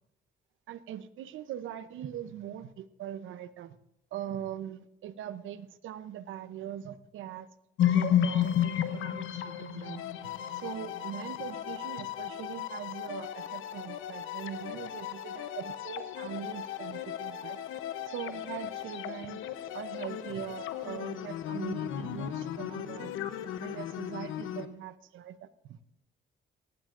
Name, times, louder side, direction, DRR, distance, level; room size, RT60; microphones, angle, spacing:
voice 1, 0.7-3.8 4.1-7.5 7.8-17.6 18.1-23.1 23.6-25.8, right 10 dB, 80° right, 14 dB, 0.7 m, -41 dB
sound 1, 7.8-24.7, left 10 dB, 80° left, 0.8 m, -34 dB
18.5 x 15.0 x 2.5 m, 0.82 s
cardioid pair, 90°, 20 cm